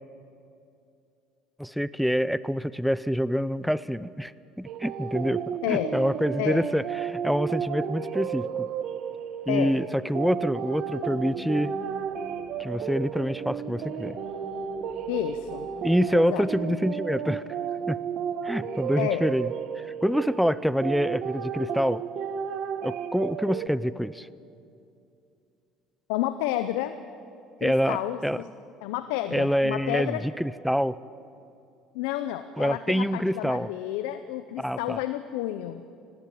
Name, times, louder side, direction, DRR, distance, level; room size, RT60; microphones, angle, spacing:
voice 1, 1.6-4.3 4.6-8.7 9.5-11.7 12.6-14.2 15.8-17.4 17.9-18.0 18.4-19.5 19.8-22.0 22.8-24.3 27.6-28.4 29.3-31.0 32.6-33.7 34.6-35.0, equal, ahead, 17 dB, 0.5 m, -26 dB
sound 1, 4.7-23.7, right 8 dB, 60° right, 1.2 m, -33 dB
voice 2, 5.6-6.0 6.4-6.7 9.5-9.8 15.1-15.7 16.1-16.8 19.0-19.3 26.1-26.9 27.6-28.5 28.8-30.2 31.9-35.8, left 13 dB, 90° left, 11 dB, 0.7 m, -30 dB
sound 2, 10.6-18.0, left 1 dB, 20° left, 2.1 m, -46 dB
19.5 x 16.0 x 8.4 m, 2.6 s
supercardioid pair, 100°, 0 cm